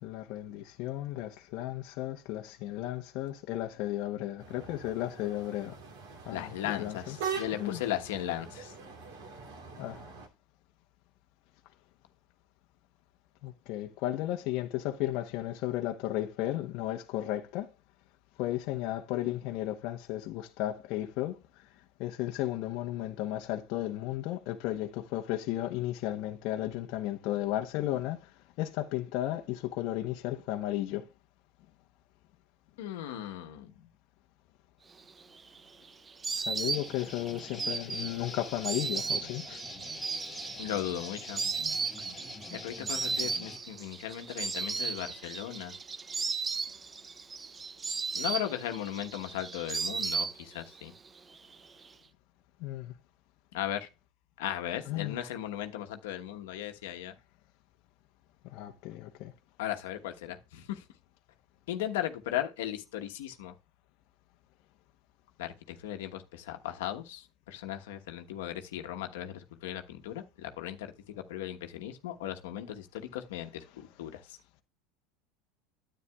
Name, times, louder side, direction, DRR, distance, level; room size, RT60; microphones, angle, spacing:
voice 1, 0.0-5.8 6.2-7.2 7.5-7.8 9.8-10.0 13.4-17.7 18.4-21.7 22.0-31.1 36.4-39.6 52.6-52.9 54.9-55.2 58.4-59.3 73.7-73.8, left 14 dB, 55° left, 0.9 m, -34 dB
sound 1, 4.4-10.3, right 6 dB, 75° right, 2.8 m, -42 dB
voice 2, 6.3-8.7 32.8-33.7 40.6-41.4 42.5-45.7 48.1-50.9 53.5-53.9 54.4-57.1 59.6-60.8 61.7-63.5 65.4-70.9 71.3-74.2, left 12 dB, 80° left, 1.2 m, -37 dB
Insect, 35.1-50.8 51.1-51.9, right 5 dB, 20° right, 0.4 m, -35 dB
sound 2, 36.7-43.6, left 4 dB, 10° left, 2.2 m, -46 dB
9.7 x 8.8 x 2.3 m
supercardioid pair, 130°, 0 cm